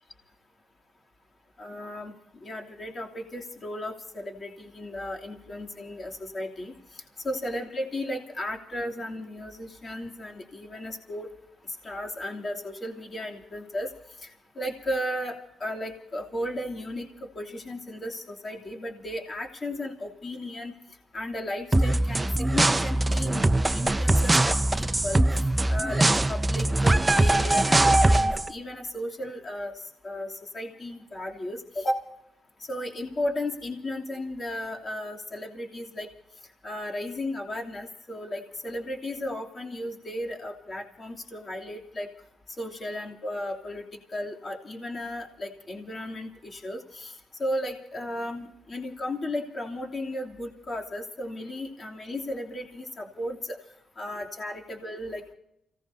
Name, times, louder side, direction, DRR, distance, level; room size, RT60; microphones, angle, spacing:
voice 1, 1.6-2.1 2.4-11.3 11.6-13.9 14.2-14.3 14.5-20.7 21.1-23.4 23.7-32.0 32.7-36.1 36.6-42.1 42.6-53.6 54.0-55.3, left 1 dB, 35° left, -1 dB, 2.9 m, -35 dB
sound 1, 21.7-28.5, right 2 dB, 15° right, 0.6 m, -22 dB
29.5 x 17.5 x 2.8 m, 0.81 s
cardioid pair, 90°, 0 cm